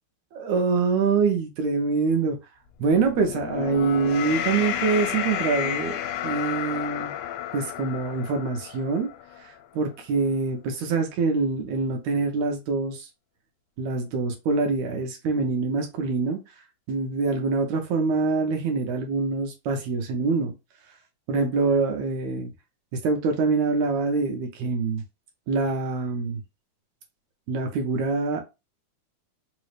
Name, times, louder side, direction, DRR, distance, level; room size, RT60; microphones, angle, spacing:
voice 1, 0.4-2.4 2.8-6.0 6.2-7.1 7.5-9.1 9.4-13.1 13.8-16.4 16.9-20.5 21.3-22.5 23.0-25.0 25.5-26.4 27.5-28.4, right 4 dB, 75° right, 1.9 m, -25 dB
sound 1, 2.8-9.4, left 11 dB, 85° left, 2.0 m, -31 dB
4.7 x 2.0 x 3.1 m
omnidirectional pair, 3.4 m